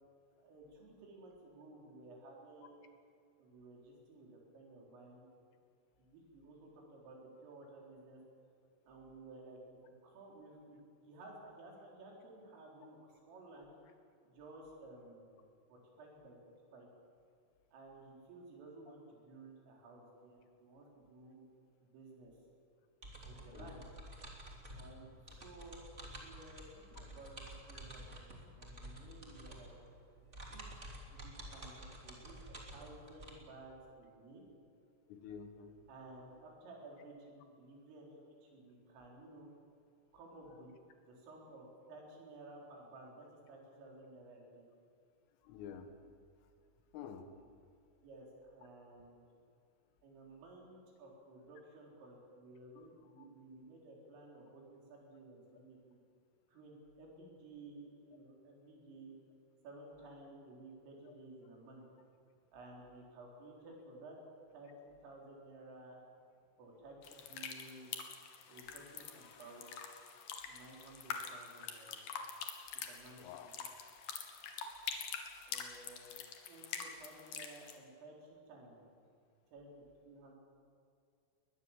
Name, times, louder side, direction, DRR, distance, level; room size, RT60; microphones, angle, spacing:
voice 1, 0.4-3.0 3.4-5.3 6.0-8.2 8.9-9.6 9.9-13.8 14.2-16.4 16.7-16.9 17.7-21.5 21.8-22.3 23.3-23.9 24.7-25.1 25.4-26.6 26.9-29.7 30.5-30.7 31.1-34.5 35.9-39.5 40.1-40.7 41.1-44.6 48.0-49.2 50.0-56.0 56.5-59.2 59.6-61.8 62.5-64.2 64.5-66.0 66.6-67.9 68.5-69.8 70.5-72.0 72.9-73.3 75.5-76.2 76.5-78.9 79.5-80.3, right 2 dB, 85° right, -1 dB, 6.8 m, -55 dB
sound 1, 23.0-33.3, right 1 dB, 20° right, 2.2 m, -51 dB
voice 2, 35.1-35.8 45.4-45.9 46.9-47.3 53.2-53.3 61.1-61.2 73.2-73.5, left 8 dB, 85° left, 7 dB, 4.2 m, -49 dB
sound 2, 67.0-77.8, left 7 dB, 60° left, 2.9 m, -46 dB
22.0 x 20.0 x 7.4 m, 2.4 s
omnidirectional pair, 5.7 m